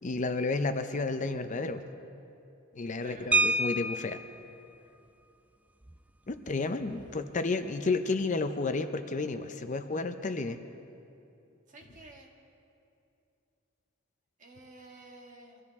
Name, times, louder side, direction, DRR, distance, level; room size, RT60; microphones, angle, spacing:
voice 1, 0.0-1.8 2.7-4.2 6.3-10.6, left 3 dB, 40° left, 8 dB, 0.6 m, -31 dB
voice 2, 3.0-3.3 6.9-7.4 11.7-12.3 14.4-15.6, right 2 dB, 40° right, 0 dB, 1.9 m, -52 dB
sound 1, 3.3-4.4 5.8-6.0 6.3-6.5 6.9-7.2, right 2 dB, 5° right, 0.3 m, -28 dB
24.0 x 14.0 x 3.6 m, 2.7 s
head